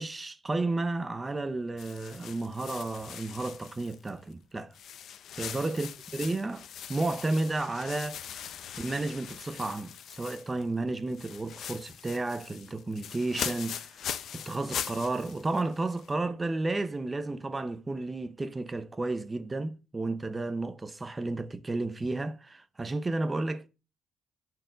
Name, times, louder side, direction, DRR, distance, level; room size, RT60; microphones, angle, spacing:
voice 1, 0.0-4.7 5.4-8.2 8.8-14.0 14.3-23.7, right 2 dB, 15° right, 0.7 m, -32 dB
sound 1, 1.8-4.3 4.7-10.7 11.0-16.1, left 9 dB, 55° left, 0.7 m, -41 dB
10.0 x 4.6 x 6.5 m
cardioid pair, 170°, 0 cm